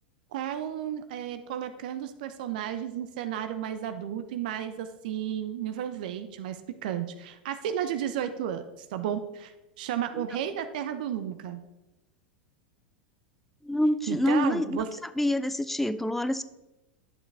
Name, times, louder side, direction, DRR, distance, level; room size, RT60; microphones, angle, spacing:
voice 1, 0.3-11.6 14.1-14.9, right 10 dB, 60° right, 10 dB, 0.7 m, -33 dB
voice 2, 13.6-14.8 15.2-16.4, left 1 dB, 5° left, 13 dB, 0.5 m, -26 dB
11.0 x 7.1 x 3.4 m, 1.0 s
figure-of-eight pair, 90°, 5 cm